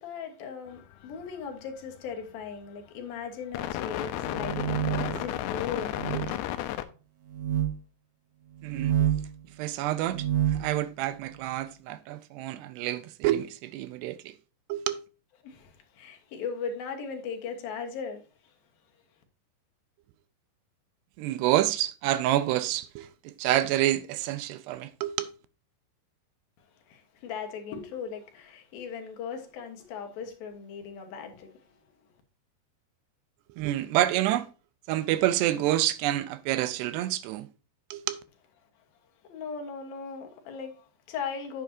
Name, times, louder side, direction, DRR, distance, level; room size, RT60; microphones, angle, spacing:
voice 1, 0.0-6.1 15.4-18.5 26.6-31.9 39.2-41.6, left 6 dB, 65° left, 2.8 m, -38 dB
sound 1, 0.7-1.2 2.3-2.4 3.5-6.8, left 13 dB, 85° left, 2.7 m, -33 dB
sound 2, 4.2-5.2 5.9-6.3 7.3-7.7 8.6-9.3 10.0-10.7, right 11 dB, 55° right, 1.8 m, -28 dB
voice 2, 8.6-9.1 9.6-14.3 14.7-15.0 21.2-25.3 33.6-34.5 34.9-37.5 37.9-38.2, right 14 dB, 85° right, 2.8 m, -28 dB
9.0 x 8.3 x 2.7 m
omnidirectional pair, 4.8 m